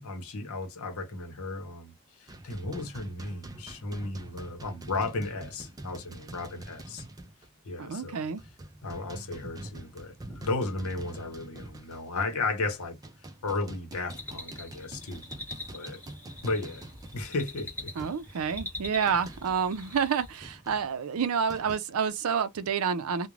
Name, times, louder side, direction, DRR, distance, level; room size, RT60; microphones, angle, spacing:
voice 1, 0.0-7.0 7.6-8.2 8.8-13.0 13.4-15.2 15.7-16.0 16.4-16.9 17.1-17.9, left 3 dB, 80° left, 0.8 m, -34 dB
sound 1, 2.3-7.5 7.8-7.9 8.4-12.4 12.8-19.7 20.4-21.8, right 1 dB, 15° right, 0.3 m, -46 dB
voice 2, 7.8-8.4 18.0-23.3, right 6 dB, 80° right, 0.4 m, -29 dB
sound 2, 14.1-20.5, left 1 dB, 10° left, 0.9 m, -43 dB
2.4 x 2.1 x 3.1 m
head